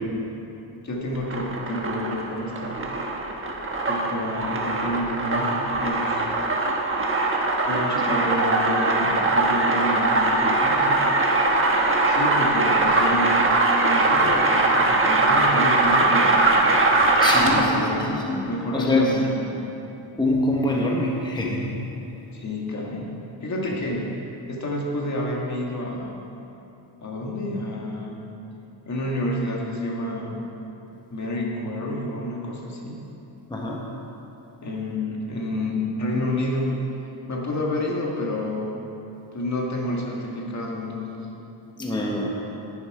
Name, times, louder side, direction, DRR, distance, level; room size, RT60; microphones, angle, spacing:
voice 1, 0.8-2.8 3.9-6.2 7.7-11.0 12.1-13.4 13.8-16.5 17.2-18.2 18.4-19.6 22.3-23.1 23.4-24.1 24.5-26.1 27.0-28.2 28.9-30.5 31.1-33.0 34.6-36.7 37.3-38.8 39.3-41.3, left 1 dB, 40° left, -2 dB, 1.9 m, -29 dB
sound 1, 1.1-17.8, right 2 dB, 30° right, 1.2 m, -21 dB
voice 2, 17.2-18.4 18.7-19.2 20.2-21.8 33.5-33.8 41.8-42.3, left 1 dB, 10° left, -2 dB, 1.1 m, -25 dB
11.0 x 10.5 x 4.8 m, 2.9 s
wide cardioid pair, 150°, 45 cm